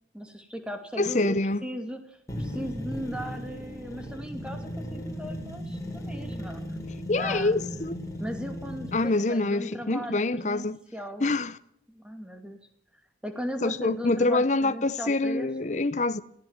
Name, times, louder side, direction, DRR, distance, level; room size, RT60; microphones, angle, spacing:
voice 1, 0.1-6.6 7.1-7.8 8.2-11.3 11.9-12.6 13.2-15.5, equal, 5° right, 2.5 m, -37 dB
voice 2, 1.0-1.6 7.1-8.0 8.9-10.8 11.2-11.6 13.6-16.2, left 2 dB, 40° left, 0.8 m, -26 dB
sound 1, 2.3-9.1, equal, 20° left, 4.4 m, -36 dB
23.0 x 16.0 x 7.4 m
head